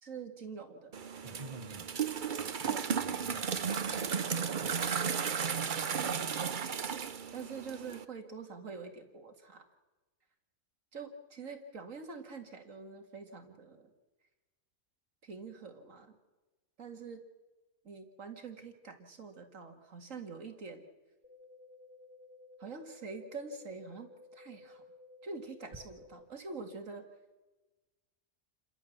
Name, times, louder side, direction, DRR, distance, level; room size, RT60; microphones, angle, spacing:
voice 1, 0.0-0.9 2.7-2.9 6.0-6.3 7.3-9.7 10.9-13.9 15.2-16.2 16.8-17.3 17.8-20.8 22.6-24.8 25.2-27.1, right 4 dB, 70° right, 5 dB, 2.5 m, -45 dB
sound 1, 0.9-8.0, right 6 dB, 45° right, 0.8 m, -34 dB
voice 2, 1.2-2.0 2.4-4.1 4.6-5.1, right 3 dB, 25° right, 6 dB, 1.3 m, -50 dB
sound 2, 21.2-26.2, left 2 dB, 10° right, 1.8 m, -56 dB
29.0 x 13.5 x 7.2 m, 1.2 s
omnidirectional pair, 1.4 m